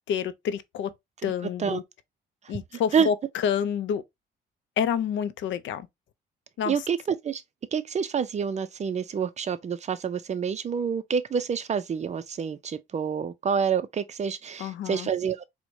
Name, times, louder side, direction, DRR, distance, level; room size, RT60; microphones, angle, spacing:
voice 1, 0.1-0.9 1.2-1.8 2.5-4.0 4.8-5.9 6.6-6.8 14.6-15.1, left 8 dB, 70° left, 0.5 m, -28 dB
voice 2, 6.7-7.4 7.7-15.5, right 6 dB, 35° right, 0.4 m, -27 dB
4.4 x 2.1 x 2.6 m
cardioid pair, 90°, 20 cm